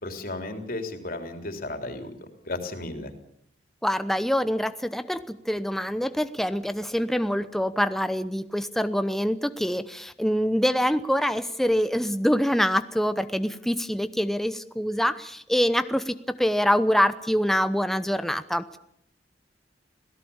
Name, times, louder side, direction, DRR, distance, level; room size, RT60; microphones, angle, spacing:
voice 1, 0.0-3.1, left 2 dB, 55° left, 5 dB, 3.6 m, -34 dB
voice 2, 3.8-18.8, equal, ahead, 11 dB, 0.8 m, -25 dB
26.5 x 17.5 x 7.2 m, 0.72 s
head